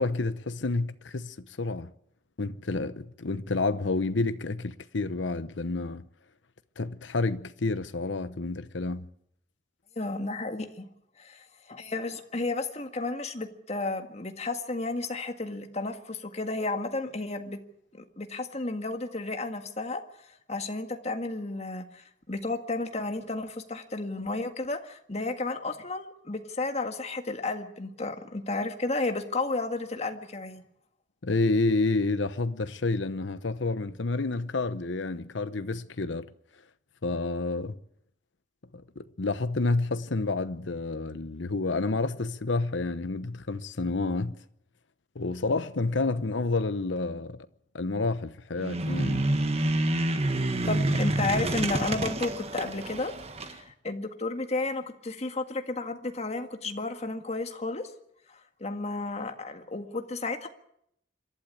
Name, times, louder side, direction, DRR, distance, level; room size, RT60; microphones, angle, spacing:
voice 1, 0.0-1.9 2.4-6.0 6.8-9.1 31.2-36.3 37.0-37.8 39.0-44.3 45.1-47.4 47.7-49.3, left 3 dB, 80° left, 0.9 m, -29 dB
voice 2, 10.0-10.9 11.2-17.6 17.9-20.0 20.5-30.6 50.7-53.1 53.4-57.9 58.3-60.5, left 2 dB, 35° left, 1.8 m, -32 dB
sound 1, 48.6-53.6, right 1 dB, 35° right, 1.5 m, -28 dB
26.5 x 12.0 x 8.4 m
head